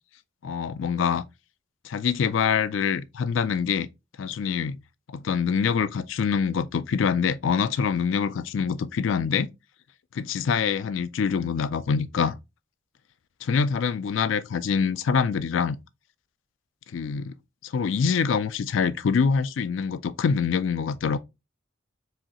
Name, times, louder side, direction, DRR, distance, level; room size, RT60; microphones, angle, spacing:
voice 1, 0.4-1.3 1.8-3.9 4.2-4.8 5.1-9.5 10.1-12.4 13.4-15.8 16.9-17.3 17.6-21.2, left 6 dB, 85° left, 0.4 m, -25 dB
4.8 x 3.1 x 2.9 m
head